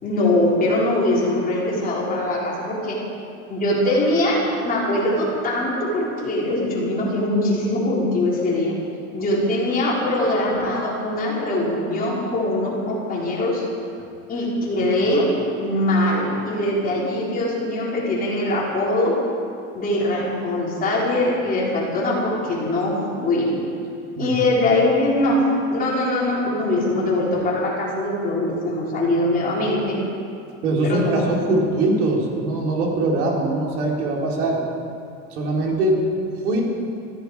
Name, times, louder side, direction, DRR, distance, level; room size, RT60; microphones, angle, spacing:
voice 1, 0.0-3.0 3.5-8.7 9.1-13.6 14.3-15.3 15.6-19.2 19.7-23.6 24.2-25.4 25.7-30.0 30.8-31.3, left 1 dB, 20° left, -5 dB, 3.8 m, -22 dB
voice 2, 30.6-34.6 35.3-36.1 36.4-36.6, right 2 dB, 85° right, -1 dB, 3.8 m, -22 dB
19.0 x 15.0 x 4.8 m, 2.5 s
supercardioid pair, 155°, 43 cm